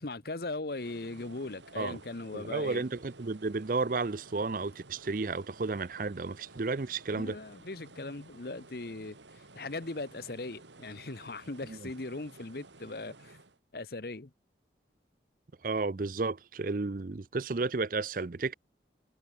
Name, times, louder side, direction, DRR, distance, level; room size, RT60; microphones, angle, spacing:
voice 1, 0.0-2.8 7.1-9.2 9.5-13.4 13.7-14.3, left 2 dB, 55° left, 1.0 m, -39 dB
sound 1, 0.6-13.6, right 3 dB, 85° right, 2.7 m, -54 dB
voice 2, 2.3-7.4 11.7-11.9 15.6-18.5, right 3 dB, 50° right, 0.6 m, -32 dB
head